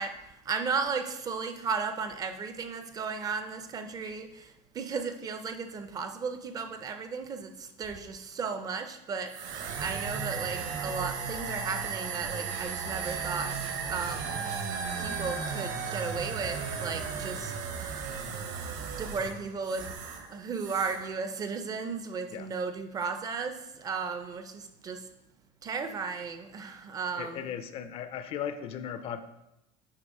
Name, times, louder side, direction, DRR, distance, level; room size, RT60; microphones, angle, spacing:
voice 1, 0.0-13.6 13.9-14.4 15.0-18.2 19.0-25.1 25.6-27.5, right 5 dB, 25° right, 8 dB, 0.4 m, -35 dB
sound 1, 9.3-20.3 20.5-21.1, right 5 dB, 55° right, 0.8 m, -35 dB
sound 2, 10.6-15.0, equal, 80° right, 1.6 m, -48 dB
voice 2, 27.2-29.2, left 8 dB, 40° left, 11 dB, 0.4 m, -37 dB
8.0 x 3.1 x 5.2 m, 0.90 s
cardioid pair, 165°, 16 cm